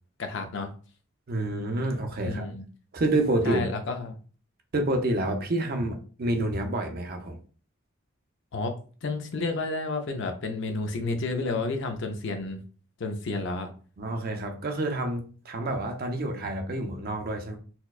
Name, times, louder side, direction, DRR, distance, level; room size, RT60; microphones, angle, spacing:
voice 1, 0.2-0.7 2.2-2.6 3.4-4.2 8.5-8.7 9.0-12.6 13.0-13.7, left 3 dB, 55° left, 5 dB, 0.5 m, -31 dB
voice 2, 1.3-2.6 2.9-3.6 4.7-7.4 14.0-17.6, right 1 dB, 45° right, 5 dB, 0.5 m, -28 dB
4.2 x 2.2 x 2.4 m, 0.39 s
head